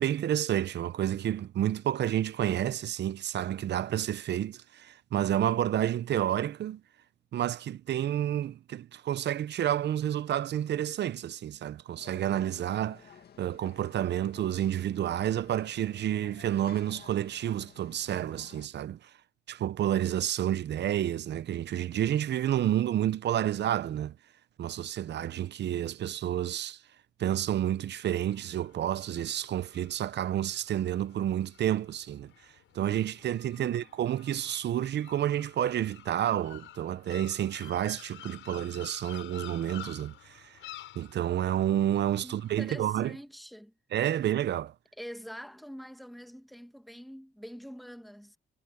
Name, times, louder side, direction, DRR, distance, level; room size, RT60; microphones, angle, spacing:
voice 1, 0.0-6.8 7.3-13.0 13.4-19.1 19.5-24.1 24.6-26.8 27.2-32.3 32.7-40.6 41.0-43.1 43.9-44.7, right 11 dB, 60° right, 0.7 m, -30 dB
sound 1, 12.0-18.7, left 8 dB, 55° left, 2.1 m, -54 dB
sound 2, 28.1-43.0, left 13 dB, 80° left, 6.4 m, -51 dB
voice 2, 42.2-43.7 45.0-48.4, equal, ahead, 1.9 m, -45 dB
cardioid pair, 90°, 20 cm